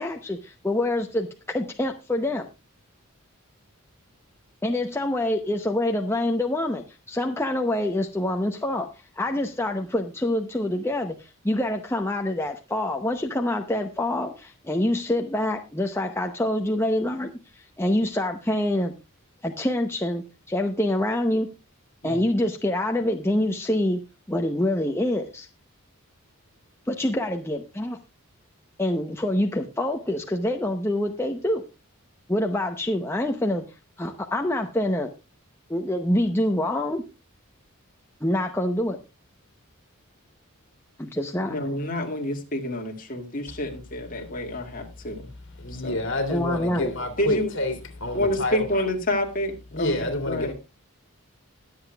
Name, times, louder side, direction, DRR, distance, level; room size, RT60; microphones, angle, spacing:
voice 1, 0.0-2.5 4.6-18.9 19.4-21.5 22.0-24.0 24.3-25.5 26.9-28.0 28.8-31.6 32.3-33.6 34.0-35.1 35.7-37.0 38.2-39.0 41.0-41.6 46.3-46.9, left 1 dB, 10° left, 0.7 m, -26 dB
voice 2, 41.5-45.3 45.7-46.0 47.2-47.5 48.1-50.5, left 1 dB, 40° left, 2.2 m, -28 dB
voice 3, 45.6-48.7 49.7-50.5, left 1 dB, 60° left, 2.6 m, -28 dB
21.0 x 7.9 x 2.3 m
head